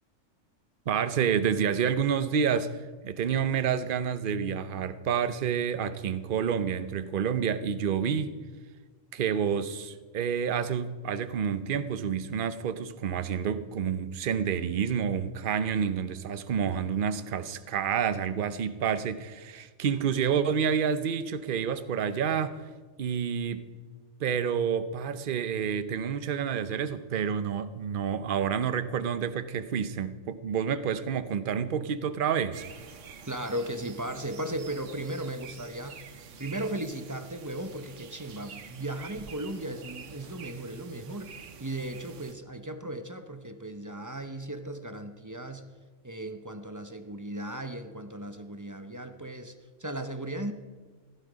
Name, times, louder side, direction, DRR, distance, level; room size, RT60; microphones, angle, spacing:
voice 1, 0.9-2.8 3.0-8.4 9.1-22.6 23.0-23.7 24.2-32.6, right 7 dB, 50° right, 12 dB, 0.8 m, -29 dB
sound 1, 32.5-42.3, right 6 dB, 75° right, 1.3 m, -48 dB
voice 2, 33.3-36.0 36.4-45.7 46.0-50.5, right 1 dB, 20° right, 8 dB, 0.6 m, -36 dB
15.5 x 11.5 x 5.1 m, 1.4 s
omnidirectional pair, 1.3 m